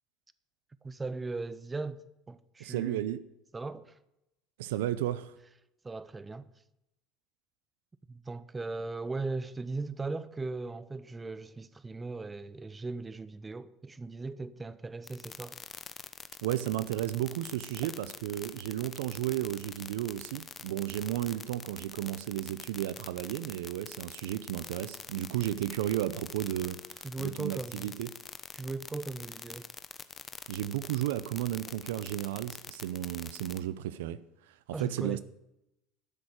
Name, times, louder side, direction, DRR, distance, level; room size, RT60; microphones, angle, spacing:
voice 1, 0.8-3.1 3.5-3.9 5.8-6.5 8.1-15.6 27.0-27.9 28.5-29.7 34.7-35.2, right 3 dB, 20° right, 0.8 m, -38 dB
voice 2, 2.6-3.2 4.6-5.3 16.4-28.1 30.5-35.2, right 13 dB, 85° right, 0.5 m, -33 dB
sound 1, 15.1-33.6, left 5 dB, 30° left, 1.0 m, -44 dB
12.5 x 6.4 x 8.7 m
hypercardioid pair, 85°, 0 cm